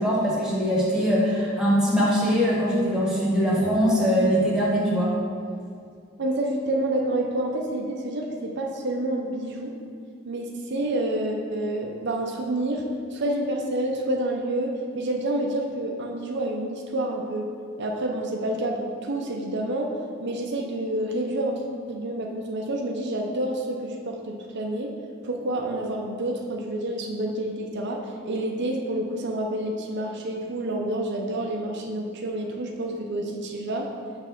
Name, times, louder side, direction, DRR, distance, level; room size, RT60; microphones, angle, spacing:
voice 1, 0.0-5.1, equal, 5° right, -6 dB, 1.5 m, -22 dB
voice 2, 6.2-9.7 10.2-12.9 13.1-17.5 17.8-20.0 20.2-21.6 21.9-24.9 25.2-33.9, right 1 dB, 55° right, 0 dB, 0.6 m, -28 dB
6.9 x 3.4 x 5.9 m, 2.3 s
head